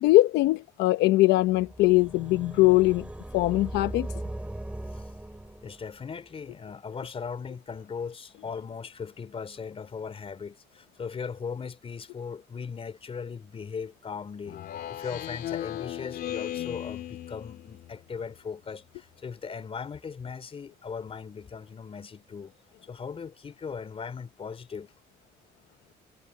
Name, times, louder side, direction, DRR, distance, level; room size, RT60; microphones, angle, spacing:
voice 1, 0.0-3.1 3.3-4.1, left 18 dB, 85° left, 0.9 m, -21 dB
sound 1, 1.5-6.1, right 1 dB, 5° right, 3.4 m, -39 dB
voice 2, 5.6-14.6 14.9-22.5 22.8-24.9, left 6 dB, 35° left, 4.0 m, -38 dB
Speech synthesizer, 14.5-18.0, left 12 dB, 65° left, 2.9 m, -36 dB
cardioid pair, 110°, 17 cm